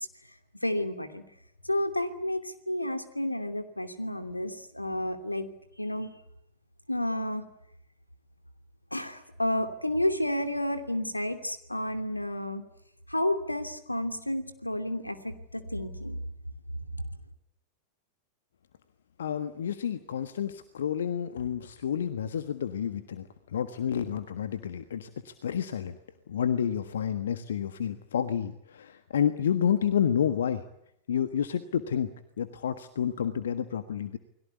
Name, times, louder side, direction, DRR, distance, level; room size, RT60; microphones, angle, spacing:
voice 1, 0.6-1.2 1.6-5.5 5.8-6.1 6.9-7.4 8.9-12.6 13.1-16.2, left 1 dB, 85° left, 9 dB, 2.9 m, -31 dB
voice 2, 19.2-26.0 26.3-30.6 31.1-32.1 32.4-34.2, left 8 dB, 65° left, 11 dB, 1.5 m, -30 dB
29.5 x 22.0 x 8.3 m, 0.78 s
figure-of-eight pair, 90°, 0 cm